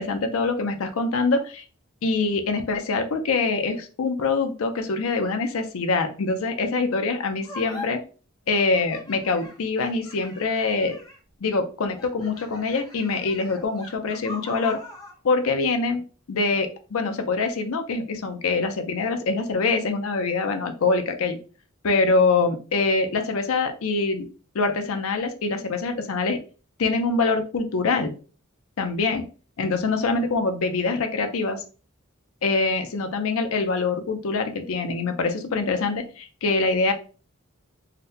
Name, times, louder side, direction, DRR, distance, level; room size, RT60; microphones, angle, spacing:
voice 1, 0.0-1.6 2.0-8.0 8.5-11.0 11.4-14.8 15.2-21.4 21.8-24.3 24.5-26.4 26.8-28.1 28.8-29.3 29.6-31.6 32.4-36.9, left 3 dB, 75° left, 6 dB, 0.5 m, -24 dB
sound 1, 7.4-7.9 8.5-11.3 11.9-15.2, left 2 dB, 20° left, 0.7 m, -41 dB
3.9 x 2.1 x 2.6 m, 0.36 s
head